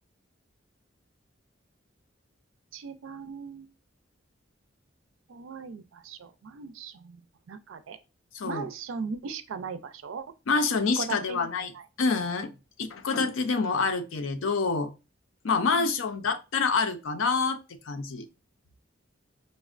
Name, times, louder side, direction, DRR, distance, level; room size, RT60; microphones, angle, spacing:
voice 1, 2.7-3.7 5.3-6.9 7.5-8.0 8.4-10.2 11.0-11.5 15.7-15.9, right 5 dB, 85° right, 0.4 m, -38 dB
voice 2, 8.3-8.7 10.5-11.7 12.0-12.5 12.8-14.9 15.4-17.6 17.9-18.3, left 4 dB, 85° left, 0.5 m, -27 dB
5.1 x 2.1 x 2.4 m
head